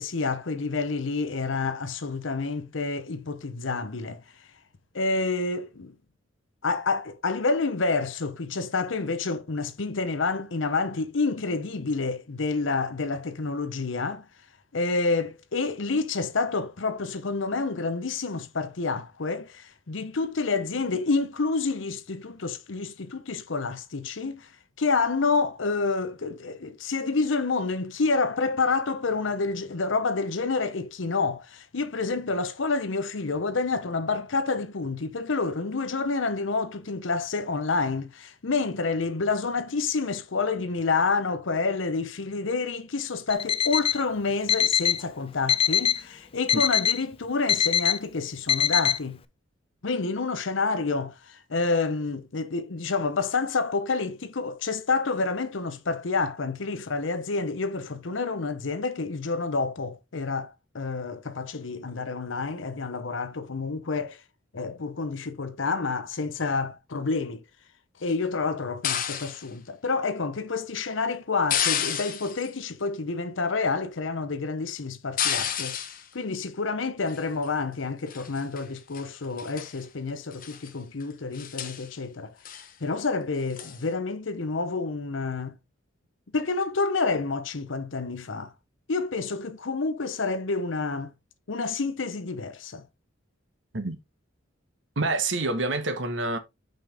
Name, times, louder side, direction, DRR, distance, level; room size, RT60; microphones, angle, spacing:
voice 1, 0.0-4.2 4.9-5.9 6.6-14.3 14.7-24.5 24.8-49.2 49.8-64.2 64.5-67.4 68.0-75.8 76.1-82.3 82.8-85.6 86.3-88.5 88.9-91.1 91.5-92.8, left 4 dB, 75° left, 0.8 m, -28 dB
Alarm, 43.3-44.0 44.5-45.0 45.5-46.0 46.5-47.0 47.5-48.0 48.5-49.0, left 9 dB, 30° left, 0.4 m, -23 dB
sound 1, 68.8-69.4 71.5-72.5 75.2-76.0 77.1-77.5 78.1-78.6 78.9-79.1 79.4-79.8 80.3-80.7 81.0-81.1 81.3-81.9 82.5-82.7 83.6-83.8, left 9 dB, 45° left, 0.9 m, -30 dB
voice 2, 95.0-96.4, right 2 dB, 65° right, 1.2 m, -27 dB
5.6 x 5.2 x 3.4 m
head